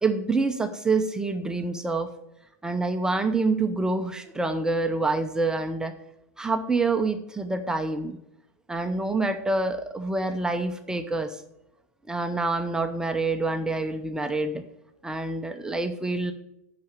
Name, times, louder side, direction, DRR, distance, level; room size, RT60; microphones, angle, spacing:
voice 1, 0.0-2.1 2.6-5.9 6.4-8.2 8.7-11.4 12.1-14.6 15.0-16.3, right 3 dB, 10° right, 6 dB, 0.7 m, -26 dB
7.7 x 5.9 x 6.7 m, 0.83 s
hypercardioid pair, 110°, 9 cm